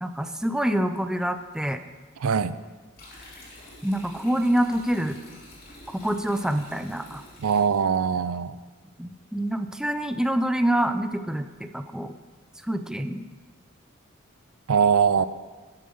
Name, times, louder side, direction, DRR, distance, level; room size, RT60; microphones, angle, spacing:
voice 1, 0.0-1.8 3.8-5.2 5.9-7.2 9.0-12.1 12.6-13.2, right 1 dB, 5° right, 8 dB, 0.5 m, -26 dB
voice 2, 2.2-2.6 7.4-8.5 14.7-15.3, right 6 dB, 80° right, 15 dB, 0.5 m, -22 dB
sound 1, 2.9-8.2, left 1 dB, 45° left, 3.1 m, -48 dB
12.0 x 7.5 x 5.4 m, 1.4 s
head